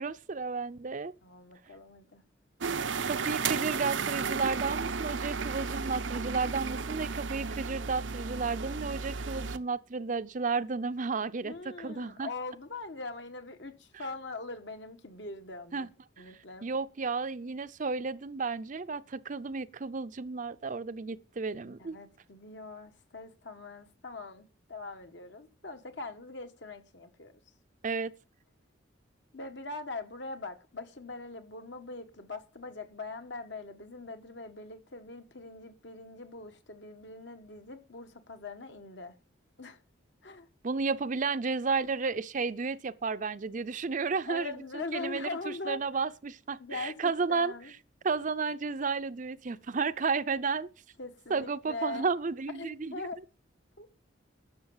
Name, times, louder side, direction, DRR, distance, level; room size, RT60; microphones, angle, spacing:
voice 1, 0.0-1.1 3.0-12.3 15.7-15.9 16.2-16.3 16.6-22.0 27.8-28.1 40.6-47.5 48.0-50.7 51.3-53.0, right 4 dB, 45° right, 0.6 m, -32 dB
voice 2, 1.2-2.2 11.4-15.9 16.2-16.7 21.8-27.3 29.3-39.2 39.6-39.8 40.2-40.5 44.3-45.8 46.6-47.7 51.0-52.1 52.6-53.2 53.8-53.9, left 3 dB, 65° left, 1.6 m, -42 dB
sound 1, 2.6-9.6, right 5 dB, 80° right, 0.7 m, -33 dB
12.0 x 6.9 x 7.3 m
head